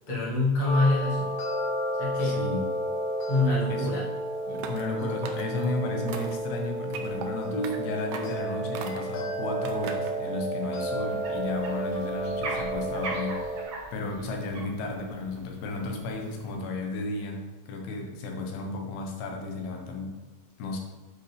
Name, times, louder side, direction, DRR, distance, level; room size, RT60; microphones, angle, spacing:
voice 1, 0.1-1.3 2.0-2.5 3.3-4.1 4.5-4.7 7.5-7.7, left 2 dB, 35° left, -7 dB, 0.7 m, -26 dB
sound 1, 0.7-13.6, right 1 dB, 70° left, 2.2 m, -32 dB
voice 2, 2.2-2.7 3.7-3.9 4.7-13.4 13.9-20.2 20.6-20.8, left 2 dB, 90° left, 2 dB, 3.0 m, -33 dB
sound 2, 4.5-4.9 5.2-5.7 6.1-6.5 6.9-7.3 7.6-7.8 8.1-8.4 8.7-9.2 9.6-10.2, right 7 dB, 80° right, 2.1 m, -39 dB
sound 3, 11.1-16.5, right 2 dB, 60° right, 3.7 m, -41 dB
9.8 x 4.8 x 3.4 m, 1.3 s
omnidirectional pair, 4.4 m